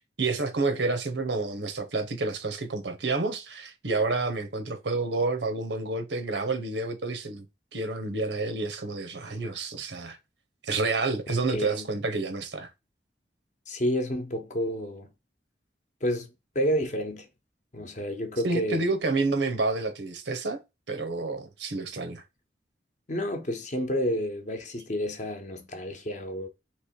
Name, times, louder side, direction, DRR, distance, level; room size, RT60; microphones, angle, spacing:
voice 1, 0.2-7.5 7.7-10.2 10.6-12.7 18.4-20.6 20.9-22.2, right 3 dB, 85° right, 0.9 m, -29 dB
voice 2, 11.5-11.9 13.7-15.1 16.0-17.3 17.7-18.8 23.1-26.5, equal, 45° left, 0.8 m, -30 dB
3.2 x 3.0 x 4.4 m
head